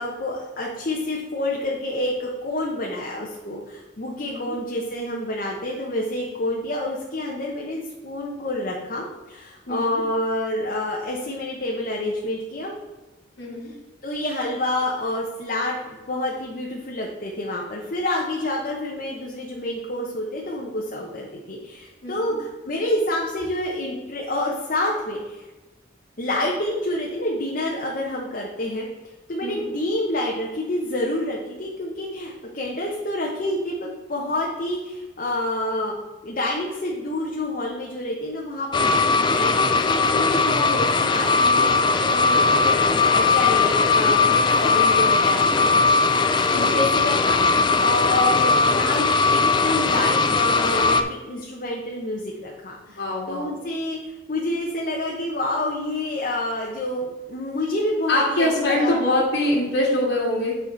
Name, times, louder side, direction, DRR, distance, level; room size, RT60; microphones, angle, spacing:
voice 1, 0.0-12.7 14.0-15.8 16.1-25.5 26.2-28.9 29.3-35.9 36.2-45.8 46.2-53.0 53.3-59.0, left 1 dB, 45° left, -2 dB, 1.0 m, -28 dB
voice 2, 4.3-4.6 9.7-10.0 13.4-13.7 22.0-22.4 29.4-29.7 46.5-46.9 52.9-53.5 58.1-60.5, left 1 dB, 85° left, -8 dB, 2.0 m, -24 dB
sound 1, 38.7-51.0, left 4 dB, 25° left, 0.4 m, -19 dB
8.6 x 5.0 x 4.0 m, 1.1 s
head